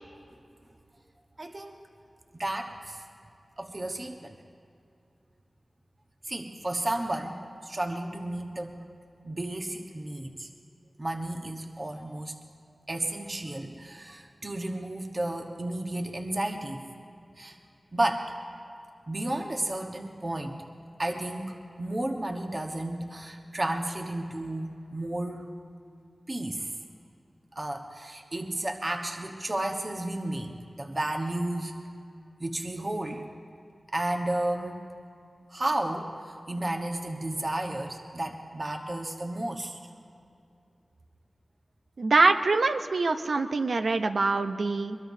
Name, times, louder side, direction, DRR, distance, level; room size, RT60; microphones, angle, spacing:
voice 1, 1.4-1.7 2.4-3.0 3.6-4.4 6.2-8.8 9.2-10.5 11.0-12.3 12.9-16.9 17.4-17.6 17.9-18.3 19.1-20.6 21.0-25.5 26.3-26.7 27.5-31.7 32.4-33.3 33.9-34.9 35.5-39.8, right 1 dB, 45° right, 2 dB, 1.2 m, -32 dB
voice 2, 42.0-45.0, right 3 dB, 80° right, 8 dB, 0.7 m, -24 dB
22.5 x 22.5 x 2.7 m, 2.5 s
cardioid pair, 40°, 0 cm